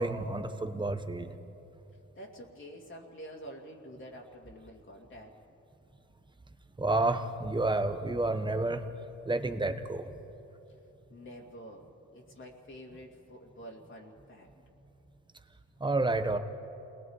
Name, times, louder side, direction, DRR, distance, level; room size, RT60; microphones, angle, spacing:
voice 1, 0.0-1.3 6.8-8.9 9.3-10.1 15.8-16.4, right 2 dB, 15° right, 8 dB, 1.2 m, -30 dB
voice 2, 2.2-5.4 11.1-14.5, equal, 40° left, -1 dB, 2.6 m, -48 dB
28.5 x 20.0 x 4.9 m, 2.9 s
cardioid pair, 90°, 30 cm